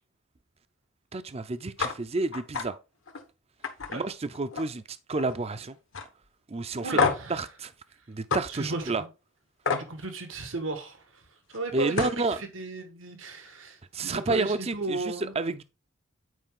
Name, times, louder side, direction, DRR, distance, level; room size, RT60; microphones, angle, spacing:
voice 1, 1.1-2.8 3.9-5.8 6.5-7.0 7.3-7.7 8.1-9.0 11.7-12.4 13.9-15.6, right 3 dB, 30° right, 0.5 m, -30 dB
sound 1, 1.8-1.9 2.3-2.7 3.1-3.2 3.6-4.8 5.1-5.5 5.9-6.1 7.0-7.3 8.3-8.4 9.6-9.9 11.5-11.6 11.9-12.2, left 5 dB, 75° left, 1.2 m, -28 dB
voice 2, 6.8-7.4 8.5-9.1 9.8-15.3, right 2 dB, 80° right, 1.6 m, -35 dB
9.2 x 4.9 x 3.7 m
head